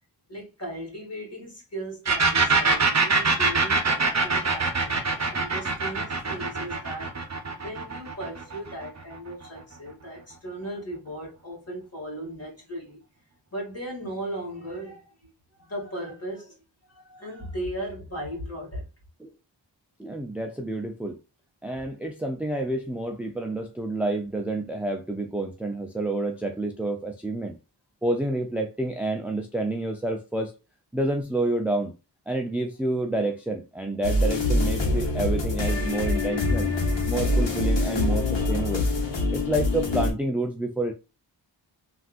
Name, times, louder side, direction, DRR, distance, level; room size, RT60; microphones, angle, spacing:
voice 1, 0.3-7.1 7.6-13.0 13.5-15.3 15.6-16.6 16.9-18.9, right 1 dB, 30° left, 1.8 m, -37 dB
sound 1, 2.1-9.6, right 4 dB, 35° right, 0.8 m, -24 dB
voice 2, 20.0-21.2 21.6-27.6 28.0-30.5 30.9-31.9 32.3-36.7 37.1-38.8 39.3-40.9, right 2 dB, 5° right, 0.4 m, -29 dB
sound 2, 34.0-40.1, left 2 dB, 65° left, 1.1 m, -24 dB
3.4 x 2.5 x 2.3 m
wide cardioid pair, 50°, 46 cm